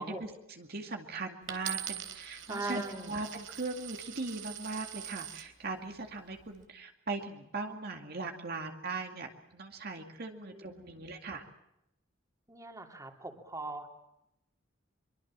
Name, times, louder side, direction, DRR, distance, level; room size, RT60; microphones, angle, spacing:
voice 1, 0.0-11.4, right 3 dB, 55° right, 3 dB, 2.3 m, -39 dB
Coin (dropping), 1.5-5.5 6.2-6.6, right 10 dB, 80° right, 3.6 m, -42 dB
voice 2, 2.5-3.1 10.3-11.2 12.5-13.9, right 2 dB, 15° right, 3 dB, 3.1 m, -41 dB
25.0 x 24.0 x 7.5 m, 0.85 s
head